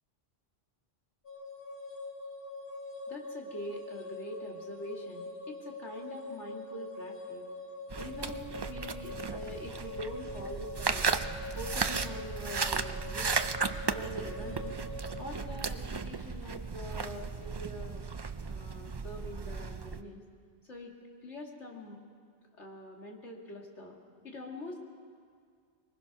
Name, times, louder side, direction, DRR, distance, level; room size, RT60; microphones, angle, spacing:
sound 1, 1.2-15.2, left 2 dB, 45° left, 3.0 m, -44 dB
voice 1, 3.1-7.4 7.9-11.0 11.5-13.4 13.9-14.8 15.2-18.0 18.5-20.2 20.6-21.0 21.2-22.0 22.5-24.0 24.2-24.8, left 1 dB, 70° left, 0 dB, 2.5 m, -44 dB
sound 2, 7.9-20.0, right 4 dB, 40° right, 0.3 m, -35 dB
23.5 x 20.0 x 6.0 m, 2.1 s
omnidirectional pair, 1.2 m